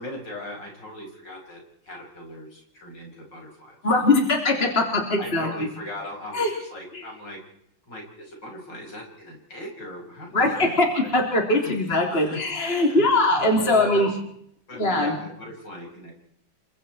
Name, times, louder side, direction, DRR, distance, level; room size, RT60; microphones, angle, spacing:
voice 1, 0.0-3.8 5.2-7.4 7.9-11.1 11.6-11.7 12.3-13.0 13.6-14.0 14.7-16.1, left 1 dB, 60° left, 0 dB, 6.7 m, -39 dB
voice 2, 3.8-5.5 6.3-6.5 6.9-7.0 10.3-14.1 14.7-15.2, left 2 dB, 30° left, 1 dB, 3.8 m, -21 dB
29.0 x 25.0 x 4.6 m, 0.70 s
omnidirectional pair, 2.2 m